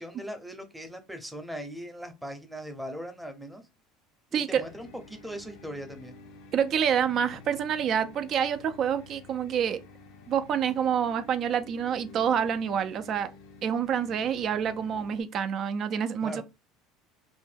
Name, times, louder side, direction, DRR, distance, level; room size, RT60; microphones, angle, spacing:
voice 1, 0.0-3.6 4.3-6.1 16.2-16.4, equal, 5° right, 0.7 m, -39 dB
voice 2, 4.3-4.6 6.5-9.8 10.3-13.3 13.6-16.4, right 8 dB, 50° right, 0.4 m, -27 dB
sound 1, 4.5-15.2, left 3 dB, 75° left, 0.5 m, -50 dB
2.6 x 2.1 x 3.3 m
hypercardioid pair, 80°, 0 cm